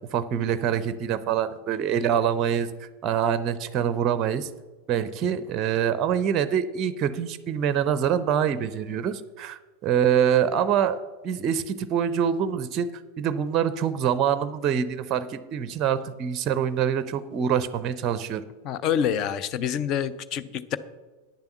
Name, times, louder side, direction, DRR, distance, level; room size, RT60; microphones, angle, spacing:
voice 1, 0.1-4.5 4.9-11.0 11.2-18.4, right 8 dB, 35° right, 15 dB, 0.5 m, -25 dB
voice 2, 18.6-20.8, left 8 dB, 35° left, 15 dB, 0.5 m, -27 dB
9.8 x 7.0 x 6.7 m, 1.3 s
figure-of-eight pair, 90°, 0 cm